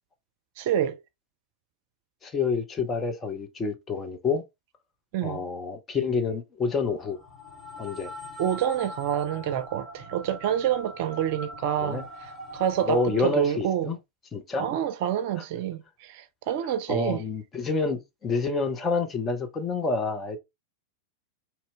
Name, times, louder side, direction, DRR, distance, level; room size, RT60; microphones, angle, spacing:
voice 1, 0.6-1.0 5.1-5.4 8.4-12.0 12.5-13.9 14.6-17.2, right 10 dB, 50° right, 0.6 m, -27 dB
voice 2, 2.2-4.4 5.2-7.2 7.8-8.1 11.8-12.1 12.9-14.0 14.3-14.7 15.4-15.5 16.9-20.4, left 4 dB, 20° left, 0.9 m, -28 dB
sound 1, 6.7-13.2, left 1 dB, 5° left, 2.9 m, -42 dB
4.3 x 3.0 x 3.3 m
figure-of-eight pair, 90°, 0 cm